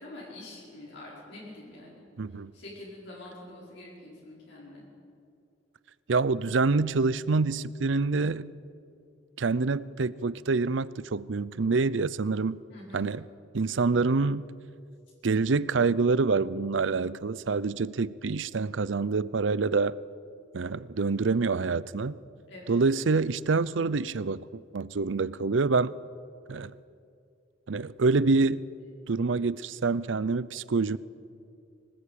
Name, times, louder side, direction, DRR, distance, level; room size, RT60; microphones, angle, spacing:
voice 1, 0.0-2.1 2.5-4.8 12.7-13.1 22.5-22.8, left 1 dB, 65° left, 5.3 m, -45 dB
voice 2, 2.2-2.5 6.1-8.5 9.4-12.6 12.9-13.2 13.5-14.5 15.2-20.0 20.5-22.2 22.7-25.9 26.5-26.7 27.7-28.6 29.1-31.0, right 4 dB, 70° right, 0.6 m, -26 dB
25.0 x 19.0 x 8.7 m
head